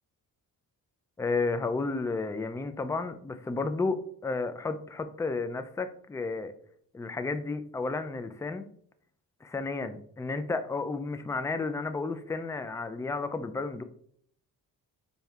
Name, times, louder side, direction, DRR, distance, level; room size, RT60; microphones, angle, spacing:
voice 1, 1.2-6.5 6.9-8.7 9.4-13.8, left 3 dB, 10° left, 10 dB, 0.3 m, -32 dB
4.5 x 2.7 x 3.4 m, 0.62 s
supercardioid pair, 55°, 42 cm